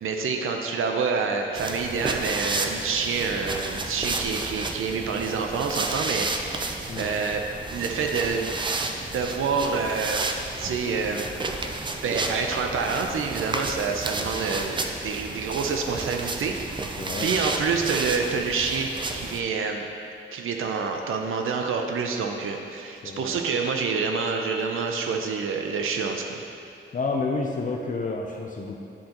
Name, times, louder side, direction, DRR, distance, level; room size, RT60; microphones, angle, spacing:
voice 1, 0.0-6.7 7.0-7.4 7.7-8.5 9.1-10.3 10.6-11.3 12.0-19.9 20.3-26.4, right 5 dB, 80° right, 3 dB, 0.5 m, -27 dB
sound 1, 1.5-19.4, right 3 dB, 25° right, 0.4 m, -32 dB
voice 2, 17.0-17.3 23.0-23.3 26.9-28.8, left 3 dB, 40° left, 0 dB, 0.4 m, -29 dB
10.0 x 3.8 x 2.9 m, 2.6 s
wide cardioid pair, 115°, 21 cm